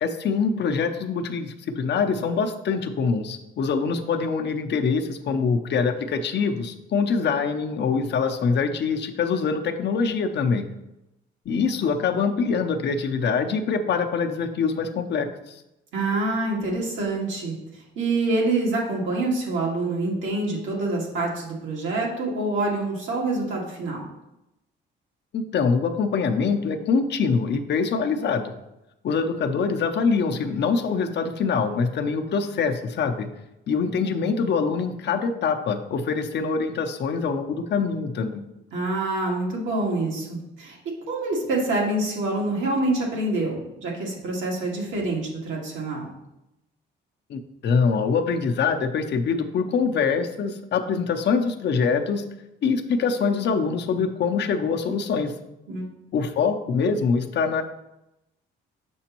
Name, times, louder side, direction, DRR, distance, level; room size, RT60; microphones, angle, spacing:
voice 1, 0.0-10.7 11.5-15.6 25.3-28.5 29.0-33.3 33.7-38.5 47.3-52.2 52.6-55.3 56.1-57.6, left 5 dB, 60° left, 6 dB, 0.7 m, -24 dB
voice 2, 15.9-17.6 18.0-24.0 38.7-40.8 41.1-46.1 55.7-55.8, right 2 dB, 90° right, -3 dB, 1.8 m, -26 dB
6.2 x 5.9 x 3.0 m, 0.90 s
cardioid pair, 90°, 20 cm